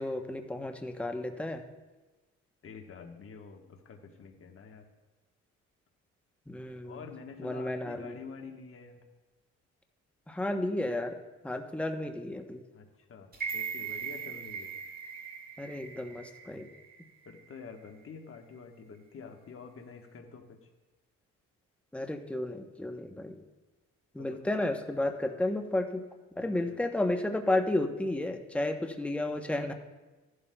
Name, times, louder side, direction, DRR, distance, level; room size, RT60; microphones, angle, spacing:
voice 1, 0.0-1.6 6.5-7.0 7.4-8.2 10.3-11.2 11.4-12.6 15.6-16.7 21.9-23.4 24.1-26.0 26.4-29.7, left 1 dB, 5° left, 5 dB, 0.8 m, -32 dB
voice 2, 2.6-4.9 6.9-9.0 12.7-14.8 17.2-20.7 24.2-24.6 26.4-26.8, left 5 dB, 45° left, 4 dB, 1.2 m, -48 dB
sound 1, 13.3-17.5 17.9-18.0, right 6 dB, 30° right, 2.0 m, -40 dB
15.0 x 11.0 x 2.2 m, 1.2 s
cardioid pair, 90°, 30 cm